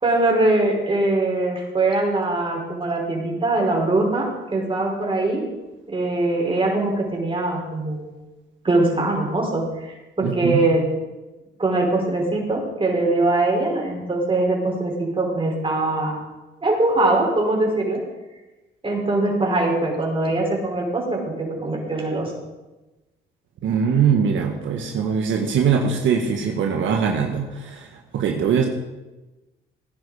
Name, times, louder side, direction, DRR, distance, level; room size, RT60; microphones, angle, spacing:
voice 1, 0.0-5.4 5.9-8.1 8.6-9.6 10.2-10.8 11.6-16.2 16.6-18.0 18.8-22.3, right 2 dB, 25° right, -1 dB, 5.2 m, -22 dB
voice 2, 10.2-10.6 23.6-28.7, right 7 dB, 75° right, 2 dB, 1.7 m, -22 dB
18.0 x 10.0 x 5.0 m, 1.1 s
cardioid pair, 90°, 20 cm